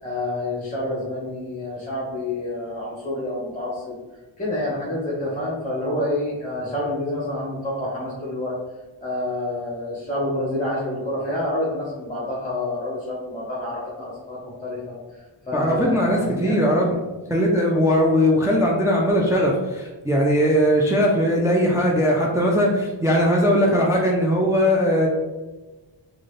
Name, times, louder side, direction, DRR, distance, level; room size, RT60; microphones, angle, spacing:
voice 1, 0.0-4.0 4.4-8.6 9.0-16.9, left 1 dB, 15° left, -6 dB, 1.2 m, -28 dB
voice 2, 15.5-17.0 17.3-25.1, equal, 5° right, -2 dB, 0.6 m, -19 dB
4.0 x 2.6 x 3.2 m, 1.2 s
cardioid pair, 45°, 49 cm